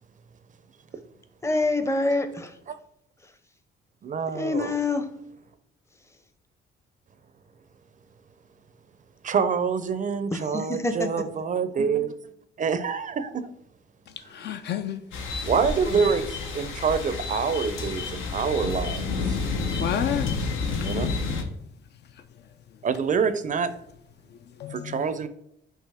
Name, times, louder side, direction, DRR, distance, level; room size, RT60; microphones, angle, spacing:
voice 1, 1.4-2.5 4.3-5.1 10.3-11.1, left 2 dB, 15° left, 0.6 m, -26 dB
voice 2, 4.0-4.7 9.2-12.1 12.6-13.5 15.4-19.4 20.8-21.2 22.8-23.7 24.7-25.3, right 6 dB, 40° right, 0.5 m, -26 dB
voice 3, 14.3-15.0 19.8-21.0 24.6-25.0, left 9 dB, 60° left, 0.4 m, -31 dB
sound 1, 15.1-21.4, left 4 dB, 85° left, 0.8 m, -30 dB
5.4 x 2.9 x 3.4 m
cardioid pair, 90°, 20 cm